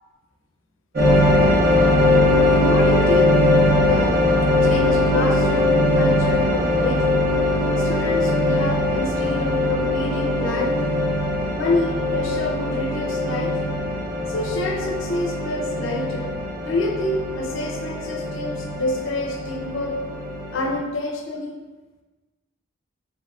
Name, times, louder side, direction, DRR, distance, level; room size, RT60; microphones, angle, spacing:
sound 1, 0.9-20.8, left 1 dB, 45° right, 0.9 m, -21 dB
voice 1, 2.4-4.2 4.6-7.1 7.8-10.9 11.5-13.8 14.3-16.4 16.6-20.0 20.5-21.6, left 2 dB, 70° left, 2 dB, 0.5 m, -27 dB
4.6 x 3.6 x 2.3 m, 1.2 s
head